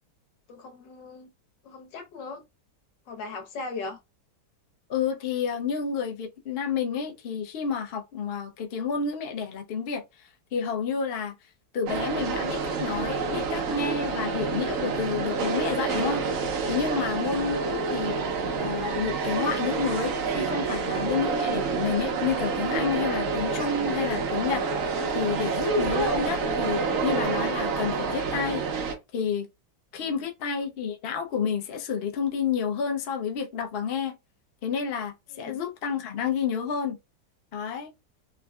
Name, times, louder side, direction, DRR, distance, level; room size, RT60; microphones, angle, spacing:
voice 1, 0.5-1.3 1.7-2.4 3.1-4.0 35.3-35.6, left 3 dB, 90° left, 1.7 m, -38 dB
voice 2, 4.9-10.0 10.5-11.3 11.7-16.2 16.7-18.2 18.6-28.6 29.1-29.5 29.9-34.2 34.6-37.0 37.5-37.9, left 6 dB, 55° left, 0.6 m, -30 dB
sound 1, 11.9-28.9, right 4 dB, 60° right, 0.9 m, -28 dB
3.7 x 2.6 x 2.2 m
omnidirectional pair, 1.9 m